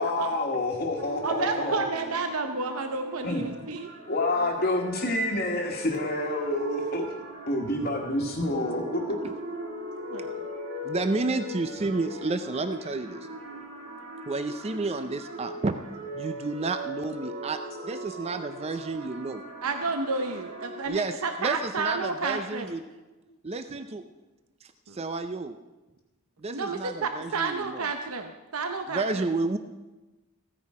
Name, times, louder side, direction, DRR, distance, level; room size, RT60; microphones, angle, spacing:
voice 1, 0.0-1.8 3.2-3.4 4.1-7.1 7.5-9.2 13.5-13.6, left 1 dB, 40° left, -4 dB, 1.4 m, -28 dB
sound 1, 1.0-20.8, right 1 dB, 65° right, 2.1 m, -40 dB
voice 2, 1.2-3.9 4.4-4.7 10.1-10.5 19.6-22.8 24.9-25.0 26.5-29.3, right 4 dB, 85° right, 6 dB, 0.8 m, -31 dB
voice 3, 10.8-13.3 14.3-15.7 16.1-17.6 17.8-19.4 20.9-21.1 21.4-22.8 23.4-24.0 24.6-25.6 26.4-27.9 28.9-29.6, right 3 dB, 30° right, 9 dB, 0.5 m, -31 dB
15.0 x 9.7 x 4.8 m, 1.1 s
head